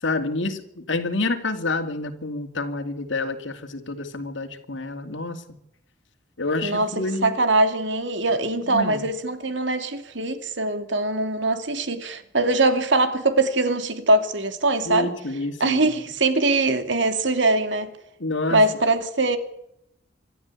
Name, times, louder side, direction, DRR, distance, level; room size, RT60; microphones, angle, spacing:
voice 1, 0.0-5.4 6.4-7.4 8.7-9.0 14.8-15.9 18.2-18.6, left 2 dB, 75° left, 7 dB, 2.5 m, -28 dB
voice 2, 6.6-15.1 15.6-17.9 18.5-19.4, right 2 dB, 70° right, 9 dB, 2.5 m, -22 dB
26.0 x 13.0 x 8.4 m, 0.79 s
head